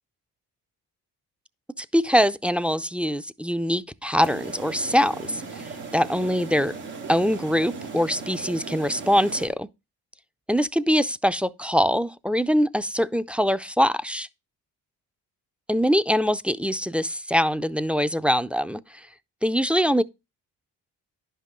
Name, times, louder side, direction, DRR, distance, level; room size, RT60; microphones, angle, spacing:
voice 1, 1.8-6.7 7.1-9.7 10.5-14.3 15.7-19.1 19.4-20.0, equal, 5° right, 0.4 m, -23 dB
sound 1, 4.2-9.5, right 4 dB, 90° right, 2.4 m, -37 dB
10.5 x 5.6 x 3.7 m
hypercardioid pair, 45°, 42 cm